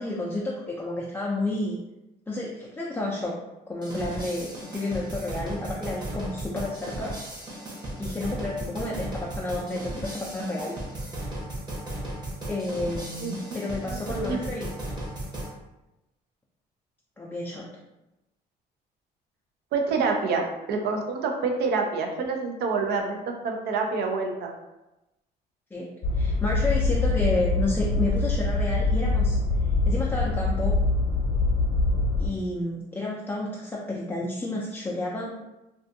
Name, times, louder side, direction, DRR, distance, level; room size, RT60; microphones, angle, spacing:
voice 1, 0.0-1.8 2.3-3.4 3.7-7.2 8.0-10.7 12.5-14.7 17.2-17.7 25.7-29.4 29.9-30.8 32.2-35.3, left 2 dB, 10° left, -5 dB, 0.3 m, -31 dB
sound 1, 3.8-15.5, right 1 dB, 25° right, 0.8 m, -35 dB
voice 2, 13.2-14.6 19.7-24.5, right 4 dB, 75° right, 3 dB, 0.5 m, -28 dB
sound 2, 26.0-32.3, left 3 dB, 50° left, 0.7 m, -24 dB
2.5 x 2.3 x 2.6 m, 0.96 s
cardioid pair, 110°, 17 cm